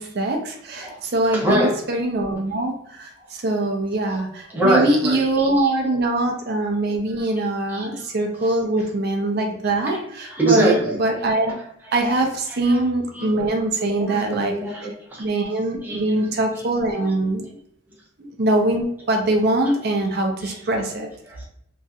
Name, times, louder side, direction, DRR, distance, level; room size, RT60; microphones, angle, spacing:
voice 1, 0.0-11.5 11.9-14.5 15.2-17.6 18.2-21.1, right 2 dB, 55° right, 3 dB, 0.6 m, -23 dB
voice 2, 1.3-1.8 4.1-4.2 4.5-5.7 7.7-7.8 8.8-8.9 9.9-10.0 10.3-11.0 12.5-12.9 13.1-15.2 15.8-16.3 17.0-17.1 19.1-19.2 19.7-19.8 21.3-21.5, right 1 dB, 10° right, -5 dB, 0.8 m, -24 dB
3.1 x 2.7 x 2.3 m, 0.69 s
head